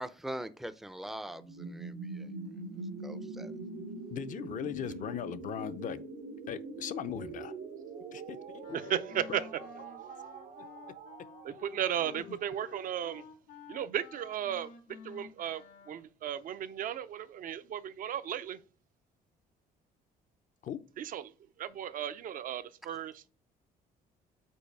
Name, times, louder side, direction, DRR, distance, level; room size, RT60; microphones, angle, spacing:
voice 1, 0.0-2.3 3.0-3.5, right 1 dB, ahead, 0.5 m, -42 dB
sound 1, 1.3-13.1, right 3 dB, 85° right, 1.4 m, -44 dB
voice 2, 4.1-6.0 6.5-7.5 8.1-8.9 9.3-9.4 10.6-10.7 12.1-12.4 20.6-20.8, left 9 dB, 50° left, 0.6 m, -39 dB
Wind instrument woodwind instrument, 8.6-16.1, left 6 dB, 80° left, 1.0 m, -52 dB
voice 3, 8.9-9.5 11.4-13.2 13.7-14.7 15.0-18.6 21.0-21.3 21.6-23.3, right 10 dB, 55° right, 0.6 m, -35 dB
5.4 x 4.2 x 5.3 m
cardioid pair, 110°, 17 cm